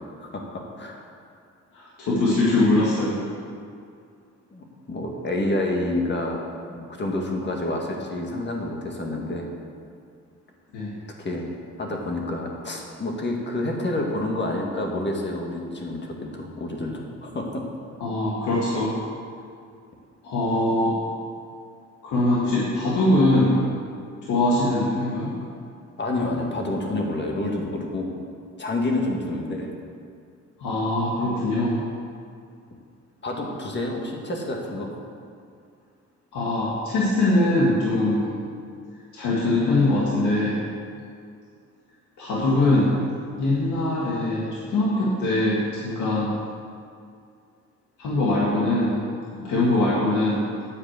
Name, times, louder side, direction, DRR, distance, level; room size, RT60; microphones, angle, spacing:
voice 1, 1.7-3.2 10.7-10.9 18.0-18.9 20.2-21.0 22.0-23.6 24.3-25.3 30.6-31.8 36.3-38.4 39.1-40.6 42.2-43.0 43.3-46.4 48.0-49.1 49.4-50.5, left 2 dB, 80° left, -8 dB, 2.0 m, -22 dB
voice 2, 4.5-6.4 6.7-9.5 11.2-11.4 11.8-17.6 26.0-28.1 28.6-29.7 33.2-34.9, left 2 dB, 35° left, 0 dB, 1.8 m, -28 dB
9.7 x 4.9 x 7.9 m, 2.3 s
cardioid pair, 90°, 30 cm